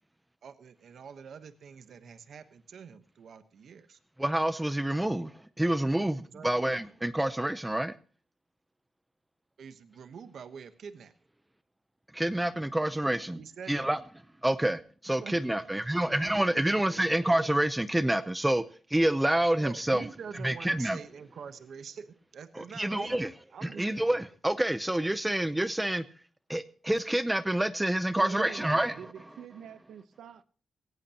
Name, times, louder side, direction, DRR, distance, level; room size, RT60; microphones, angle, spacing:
voice 1, 0.4-4.0 4.9-5.0 6.3-6.5 9.6-11.1 13.3-13.9 15.2-15.3 19.6-23.2 23.5-23.8, right 6 dB, 70° right, 1.1 m, -45 dB
voice 2, 4.2-7.9 12.1-13.4 13.7-14.0 14.4-18.6 18.9-20.1 20.4-21.0 22.5-23.3 23.6-26.0 26.5-29.1, right 1 dB, 10° right, 0.7 m, -28 dB
voice 3, 28.2-30.4, right 8 dB, 85° right, 0.8 m, -45 dB
17.5 x 17.5 x 2.9 m
cardioid pair, 105°, 0 cm